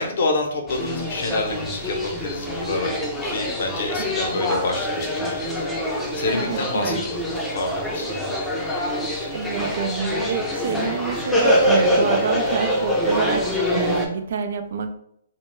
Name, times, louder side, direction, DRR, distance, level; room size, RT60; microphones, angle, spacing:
voice 1, 0.0-2.9 3.2-7.2 7.5-9.2, left 3 dB, 65° left, 3 dB, 0.6 m, -28 dB
sound 1, 0.7-14.1, equal, 5° left, 0.5 m, -24 dB
voice 2, 6.3-7.0 9.3-13.5 13.7-14.9, right 6 dB, 65° right, 7 dB, 0.3 m, -27 dB
2.2 x 2.1 x 3.0 m, 0.70 s
hypercardioid pair, 145°, 0 cm